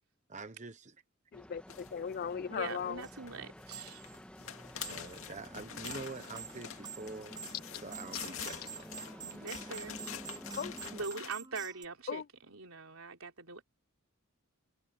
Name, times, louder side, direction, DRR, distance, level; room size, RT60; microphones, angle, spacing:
voice 1, 0.3-0.9 4.8-7.4 7.8-9.1 9.4-9.9, right 3 dB, 35° right, 1.0 m, -46 dB
voice 2, 1.3-3.0 10.6-10.8 12.1-12.3, left 7 dB, 45° left, 0.3 m, -37 dB
sound 1, 1.3-11.1, equal, 5° left, 1.6 m, -50 dB
sound 2, 1.7-2.2 3.0-3.3 3.6-11.3, left 8 dB, 70° left, 2.2 m, -46 dB
voice 3, 2.5-4.0 9.2-10.0 10.9-13.6, right 4 dB, 75° right, 3.6 m, -43 dB
sound 3, 2.7-2.8 3.0-3.1 3.7-4.2 4.8-5.3 5.6-11.9, right 7 dB, 20° right, 0.6 m, -48 dB
head